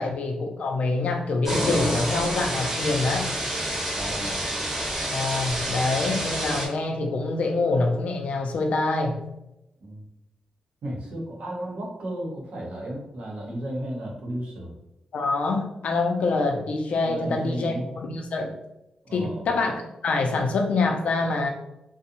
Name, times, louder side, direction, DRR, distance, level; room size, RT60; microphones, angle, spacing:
voice 1, 0.0-3.3 5.1-9.2 15.1-18.5 19.1-21.5, left 3 dB, 70° left, 3 dB, 0.4 m, -25 dB
sound 1, 1.4-6.7, right 1 dB, 15° right, 0.6 m, -28 dB
voice 2, 3.9-4.4 9.8-10.0 10.8-14.7 17.0-17.9 19.0-19.4, right 1 dB, 90° right, -3 dB, 0.8 m, -34 dB
2.5 x 2.0 x 2.8 m, 0.88 s
wide cardioid pair, 130°, 2 cm